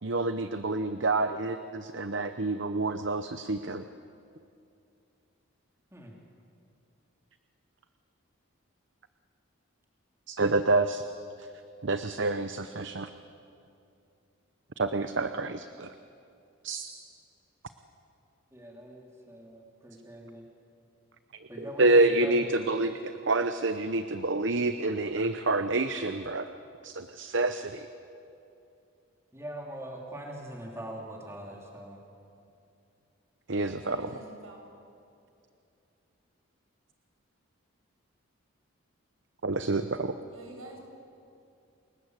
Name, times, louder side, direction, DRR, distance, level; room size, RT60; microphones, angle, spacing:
voice 1, 0.0-3.8 10.3-11.0 11.8-13.1 14.8-15.9 16.6-16.9 21.6-26.5 26.8-27.9 33.5-34.1 39.4-40.2, right 2 dB, 60° right, 10 dB, 0.8 m, -28 dB
voice 2, 18.5-20.4 21.5-22.5 29.3-32.0, right 1 dB, 15° right, -1 dB, 3.4 m, -42 dB
voice 3, 33.6-34.6 40.3-40.8, right 2 dB, 80° right, 1 dB, 6.8 m, -47 dB
29.0 x 20.5 x 8.3 m, 2.5 s
head